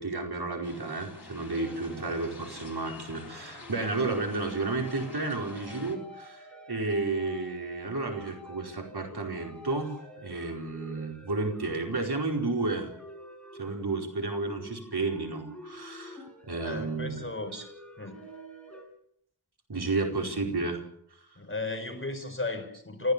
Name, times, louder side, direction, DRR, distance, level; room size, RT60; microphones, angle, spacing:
voice 1, 0.0-12.9 13.6-17.3 17.5-17.6 19.7-20.8, right 3 dB, 70° right, 2 dB, 4.8 m, -32 dB
sound 1, 0.6-6.0, left 3 dB, 70° left, 4.4 m, -47 dB
sound 2, 1.5-18.8, equal, 5° left, 7.0 m, -49 dB
voice 2, 16.5-17.5 18.0-18.2 20.2-20.3 21.4-23.1, left 3 dB, 30° left, 6 dB, 4.7 m, -34 dB
29.0 x 15.0 x 6.9 m, 0.69 s
wide cardioid pair, 60°, 40 cm